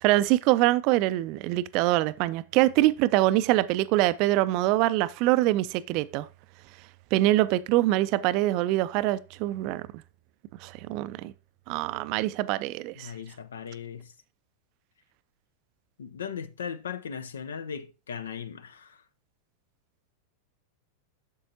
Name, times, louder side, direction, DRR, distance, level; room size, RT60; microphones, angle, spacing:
voice 1, 0.0-6.3 7.1-9.8 10.6-11.3 11.7-13.1, right 16 dB, 45° right, 0.4 m, -24 dB
voice 2, 12.9-14.1 16.0-19.0, left 7 dB, 65° left, 0.6 m, -38 dB
8.3 x 6.9 x 2.7 m
figure-of-eight pair, 90°, 0 cm